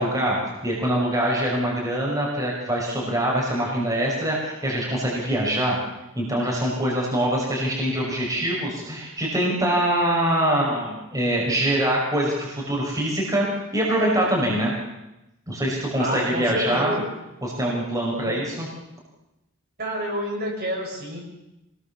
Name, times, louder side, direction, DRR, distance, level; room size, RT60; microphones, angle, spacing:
voice 1, 0.0-5.8 6.2-13.5 13.7-14.7 15.5-16.9 17.4-18.7, right 1 dB, 15° right, -3 dB, 5.7 m, -24 dB
voice 2, 16.0-17.1 18.2-18.4 19.8-21.2, equal, 45° right, -1 dB, 7.0 m, -28 dB
26.0 x 19.5 x 7.2 m, 0.93 s
head